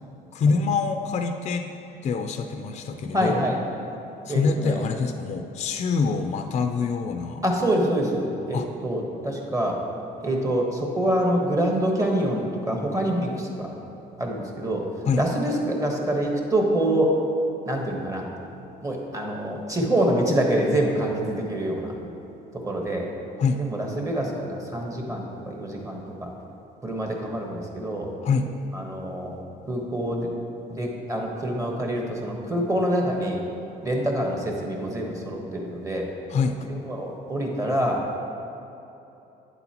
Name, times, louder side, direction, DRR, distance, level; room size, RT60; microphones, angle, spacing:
voice 1, 0.3-1.7 2.0-3.4 4.3-7.4 8.5-8.7 15.1-15.2 23.4-23.6 28.2-28.5 36.3-36.7, left 5 dB, 40° left, 6 dB, 0.5 m, -25 dB
voice 2, 3.1-3.6 4.3-4.8 7.4-9.8 10.2-13.7 14.2-14.8 15.2-17.1 17.7-18.3 18.8-21.9 22.5-23.1 23.6-26.3 26.8-28.1 28.7-29.3 29.7-30.3 30.7-33.4 33.8-36.1 36.6-38.0, right 1 dB, 20° right, 0 dB, 1.3 m, -26 dB
9.4 x 8.0 x 2.9 m, 2.9 s
cardioid pair, 110°, 17 cm